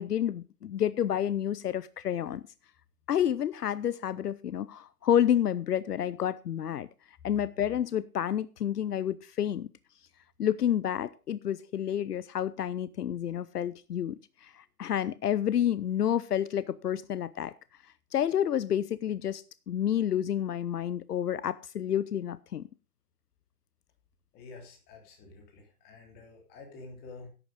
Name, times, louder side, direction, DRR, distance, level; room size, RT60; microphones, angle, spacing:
voice 1, 0.0-2.4 3.1-6.9 7.2-9.7 10.4-17.5 18.1-22.7, left 10 dB, 80° left, 0.7 m, -29 dB
voice 2, 24.3-27.3, left 3 dB, 20° left, 3.3 m, -49 dB
11.0 x 8.1 x 5.1 m
hypercardioid pair, 145°, 46 cm